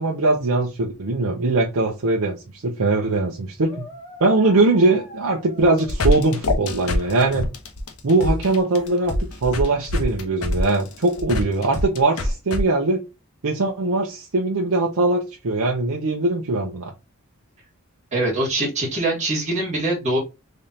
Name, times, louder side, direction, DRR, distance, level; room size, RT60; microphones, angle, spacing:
voice 1, 0.0-3.9 4.2-7.4 8.0-9.1 9.4-13.0 13.4-16.9, right 2 dB, 85° right, 0.7 m, -21 dB
sound 1, 3.6-6.4, left 1 dB, 20° left, 1.5 m, -42 dB
sound 2, 5.6-12.6, left 1 dB, 80° left, 0.9 m, -25 dB
voice 2, 18.1-20.2, right 2 dB, 35° right, 1.7 m, -23 dB
3.8 x 3.5 x 2.7 m
head